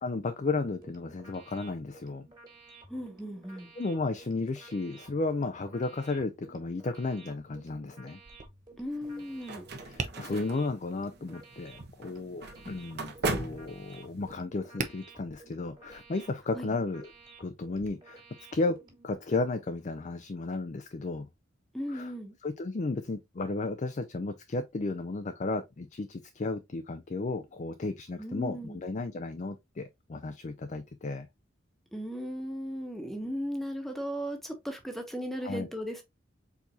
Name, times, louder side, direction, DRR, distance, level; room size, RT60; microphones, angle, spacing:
voice 1, 0.0-2.3 3.8-8.2 9.8-17.1 17.4-18.2 18.5-18.8 19.0-21.3 21.9-22.1 22.4-31.3 35.4-35.7, left 3 dB, 40° left, 0.5 m, -33 dB
sound 1, 0.7-19.2, right 3 dB, 20° right, 1.9 m, -55 dB
voice 2, 2.9-3.7 8.8-9.6 16.5-16.8 21.7-22.3 28.2-28.8 31.9-36.0, equal, ahead, 1.2 m, -36 dB
Tap, 8.2-17.9, right 4 dB, 40° right, 0.7 m, -45 dB
sound 2, 9.0-14.3, right 2 dB, 55° right, 1.1 m, -38 dB
4.6 x 4.1 x 2.6 m
head